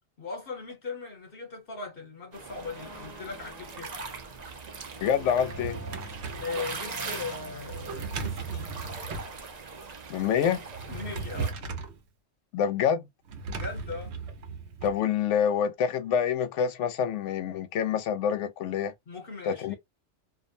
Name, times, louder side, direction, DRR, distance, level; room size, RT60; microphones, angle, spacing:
voice 1, 0.2-3.9 6.4-8.7 10.9-11.6 13.5-14.1 19.1-19.8, left 4 dB, 55° left, 1.1 m, -39 dB
sound 1, 2.3-11.5, right 4 dB, 45° right, 0.6 m, -41 dB
Brass instrument, 2.6-9.4 9.7-9.8, left 2 dB, 25° left, 0.4 m, -48 dB
voice 2, 5.0-5.8 10.1-10.6 12.5-13.0 14.8-18.9 19.5-19.8, left 8 dB, 85° left, 0.9 m, -26 dB
Drawer open or close, 5.2-6.5 7.7-9.3 10.7-12.0 13.3-15.0, right 4 dB, 70° right, 1.0 m, -36 dB
2.5 x 2.1 x 2.5 m
omnidirectional pair, 1.2 m